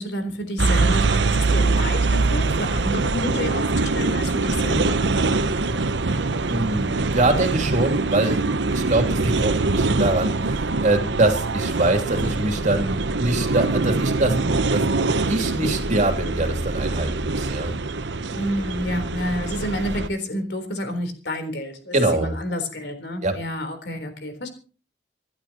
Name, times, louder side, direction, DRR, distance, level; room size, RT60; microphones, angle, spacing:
voice 1, 0.0-5.0 18.3-24.5, left 1 dB, 70° left, 7 dB, 3.9 m, -29 dB
sound 1, 0.6-20.1, right 3 dB, 85° right, 0.9 m, -23 dB
voice 2, 6.5-8.4 8.7-14.4 14.7-14.9 15.3-17.7 21.9-22.3 23.2-23.3, right 2 dB, 45° right, 4 dB, 3.0 m, -23 dB
27.0 x 11.5 x 3.0 m, 0.37 s
head